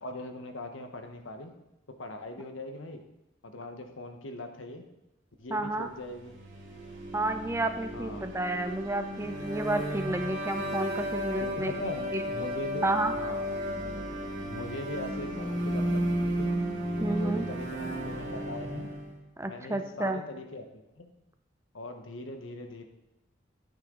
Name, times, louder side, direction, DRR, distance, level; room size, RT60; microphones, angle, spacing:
voice 1, 0.0-1.5 2.0-3.0 3.4-4.8 5.4-6.4 7.9-8.3 11.4-13.5 14.5-16.5 17.0-18.9 19.5-21.1 21.7-22.8, left 2 dB, 90° left, 6 dB, 1.2 m, -40 dB
voice 2, 5.5-5.9 7.1-11.7 12.1-12.2 12.8-13.1 17.0-17.5 19.4-20.2, right 2 dB, 15° right, 8 dB, 0.5 m, -31 dB
sound 1, 6.2-19.2, equal, 75° right, 2.6 m, -33 dB
11.0 x 9.1 x 3.8 m, 0.93 s
head